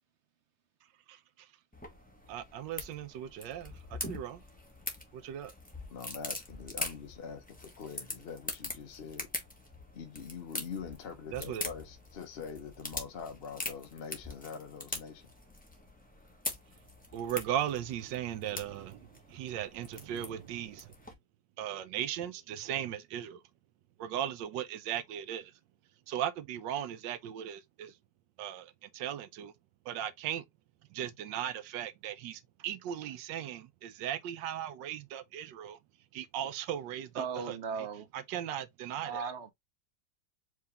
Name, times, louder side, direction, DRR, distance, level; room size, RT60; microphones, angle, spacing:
voice 1, 1.1-1.5 2.3-4.4 5.1-5.5 11.3-11.6 17.1-20.9 21.6-23.4 24.0-25.5 26.1-28.0 28.4-29.5 29.8-30.4 30.9-35.8 36.1-37.6 38.1-39.2, right 10 dB, 85° right, 1.3 m, -37 dB
sound 1, 1.7-21.1, left 1 dB, 5° left, 0.7 m, -43 dB
voice 2, 5.9-9.3 9.9-15.2, left 6 dB, 50° left, 0.7 m, -44 dB
voice 3, 37.1-38.1 39.0-39.5, right 6 dB, 60° right, 0.7 m, -37 dB
4.8 x 2.8 x 3.4 m
omnidirectional pair, 1.9 m